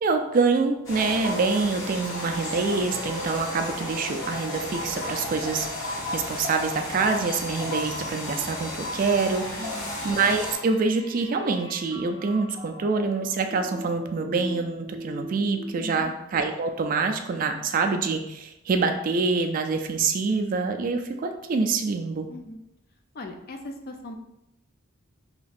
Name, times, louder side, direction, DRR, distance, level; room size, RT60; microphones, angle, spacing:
voice 1, 0.0-5.7 6.1-9.5 10.0-22.3, right 4 dB, 40° right, 5 dB, 0.3 m, -26 dB
sound 1, 0.8-10.5, left 1 dB, 85° left, 1.4 m, -33 dB
sound 2, 7.9-16.0, equal, 5° left, 1.2 m, -41 dB
voice 2, 9.6-10.0 15.8-16.1 22.3-22.6 23.1-24.2, left 2 dB, 45° left, 5 dB, 0.4 m, -39 dB
3.0 x 2.5 x 4.0 m, 0.88 s
head